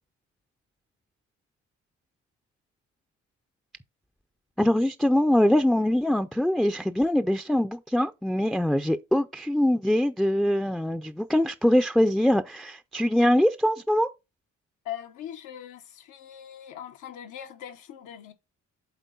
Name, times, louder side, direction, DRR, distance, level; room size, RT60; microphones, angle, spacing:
voice 1, 4.6-14.1, left 1 dB, ahead, 0.4 m, -23 dB
voice 2, 14.8-18.3, left 10 dB, 90° left, 1.0 m, -41 dB
8.2 x 3.7 x 3.9 m
cardioid pair, 90°, 30 cm